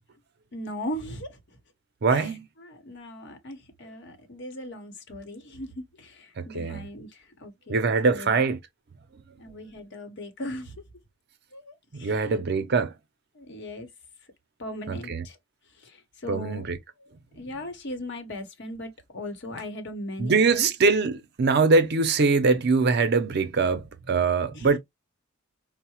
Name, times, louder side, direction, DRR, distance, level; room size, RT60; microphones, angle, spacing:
voice 1, 0.5-1.6 2.1-2.3 2.6-7.8 8.1-8.4 9.4-10.8 11.5-12.3 13.3-13.9 14.6-15.4 15.7-16.6 17.0-20.7 24.5-24.7, left 1 dB, 60° left, 0.9 m, -38 dB
voice 2, 2.0-2.5 6.4-6.8 7.7-8.6 11.9-12.9 14.9-15.2 16.3-16.8 20.2-24.8, right 4 dB, 55° right, 0.6 m, -23 dB
4.6 x 2.0 x 2.8 m
head